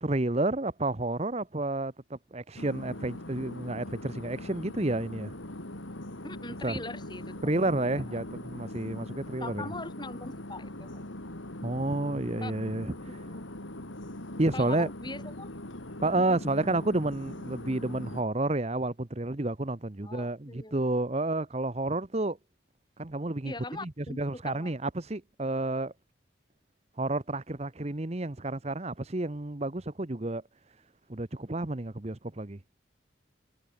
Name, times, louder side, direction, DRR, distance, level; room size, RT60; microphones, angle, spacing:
voice 1, 0.0-5.3 6.6-6.8 7.4-9.6 11.6-12.9 14.4-14.9 16.0-22.4 23.0-23.5 23.8-25.9 27.0-30.4 31.1-32.6, right 2 dB, 35° right, 1.0 m, -30 dB
sound 1, 2.6-18.2, left 1 dB, 85° left, 3.5 m, -41 dB
voice 2, 6.2-7.3 7.8-8.0 9.0-9.1 9.4-11.0 12.4-12.5 13.3-13.5 14.5-15.5 16.1-16.4 20.0-20.9 23.4-24.8, left 2 dB, 25° left, 6.8 m, -42 dB
head